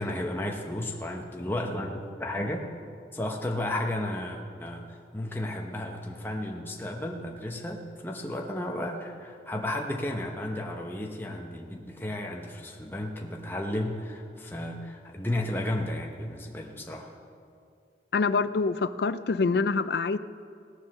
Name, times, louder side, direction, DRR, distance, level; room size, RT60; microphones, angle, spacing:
voice 1, 0.0-2.6 3.1-17.1, left 1 dB, 10° left, 1 dB, 0.9 m, -33 dB
voice 2, 18.1-20.2, left 4 dB, 65° left, 14 dB, 0.4 m, -25 dB
18.0 x 7.2 x 6.4 m, 2.4 s
head